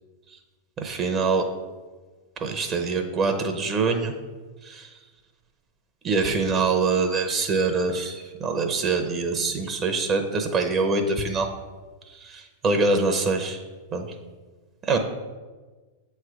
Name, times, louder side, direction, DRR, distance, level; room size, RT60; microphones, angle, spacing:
voice 1, 0.8-1.4 2.4-4.1 4.7-4.8 6.0-11.5 12.6-13.6 13.9-14.1 14.9-15.0, right 4 dB, 35° right, 5 dB, 0.7 m, -24 dB
7.6 x 3.3 x 4.8 m, 1.3 s
hypercardioid pair, 100°, 0 cm